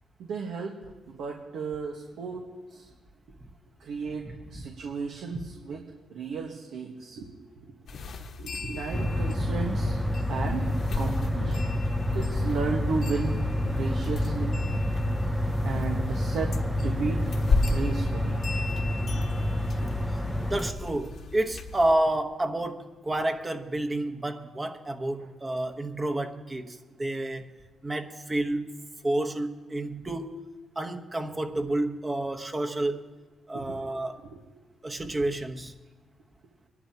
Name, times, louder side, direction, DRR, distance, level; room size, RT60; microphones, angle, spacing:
voice 1, 0.2-2.9 3.3-3.4 3.8-4.2 4.5-5.8 6.1-7.3 7.6-7.7 8.4-10.0 10.3-11.7 12.1-14.6 15.6-16.5 16.8-17.3 17.6-18.4 19.8-19.9 25.2-25.3 33.5-33.8 34.2-34.4, right 4 dB, 80° right, 1 dB, 1.4 m, -34 dB
voice 2, 4.2-4.7 5.3-5.4 20.5-27.5 27.8-28.7 29.0-30.4 30.8-33.1 33.5-34.2 34.8-35.7, right 1 dB, 20° right, 5 dB, 1.2 m, -30 dB
sound 1, 7.9-22.0, left 3 dB, 65° left, 1.3 m, -35 dB
sound 2, 8.9-20.7, left 1 dB, ahead, 0.7 m, -28 dB
24.5 x 11.0 x 2.9 m, 1.2 s
cardioid pair, 80°, 0 cm